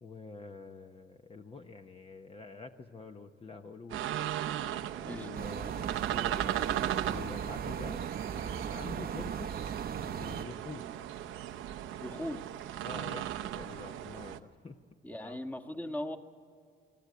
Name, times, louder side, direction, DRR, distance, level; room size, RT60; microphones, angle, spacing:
voice 1, 0.0-4.1 5.0-6.3 7.1-9.5 9.9-10.9 12.8-14.8 15.2-15.4, left 3 dB, 30° left, 5 dB, 0.9 m, -47 dB
sound 1, 3.9-14.4, right 11 dB, 85° right, 0.8 m, -37 dB
sound 2, 5.3-10.4, right 8 dB, 50° right, 0.8 m, -38 dB
voice 2, 12.0-12.4 15.0-16.2, left 1 dB, 10° left, 4 dB, 1.4 m, -38 dB
22.0 x 14.0 x 9.4 m, 2.3 s
cardioid pair, 90°, 20 cm